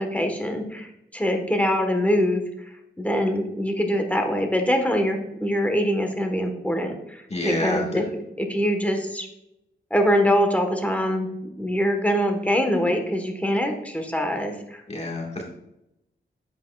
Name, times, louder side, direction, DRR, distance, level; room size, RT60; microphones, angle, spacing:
voice 1, 0.0-2.4 3.0-9.3 9.9-11.3 11.6-14.8, equal, 10° left, 4 dB, 1.2 m, -24 dB
voice 2, 7.3-7.8 14.9-15.4, left 1 dB, 35° left, -1 dB, 1.6 m, -27 dB
8.0 x 7.8 x 2.3 m, 0.84 s
wide cardioid pair, 80°, 19 cm